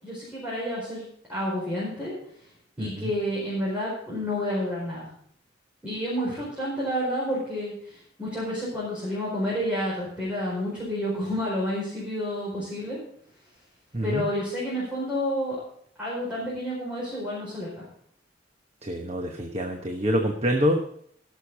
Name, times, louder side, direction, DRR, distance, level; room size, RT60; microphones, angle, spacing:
voice 1, 0.0-1.0 1.3-2.1 2.8-5.1 5.8-13.0 14.0-15.6 16.0-17.8, equal, 5° right, -8 dB, 4.8 m, -30 dB
voice 2, 13.9-14.2 18.8-20.8, equal, 35° right, 3 dB, 1.1 m, -26 dB
16.5 x 6.9 x 5.3 m, 0.66 s
head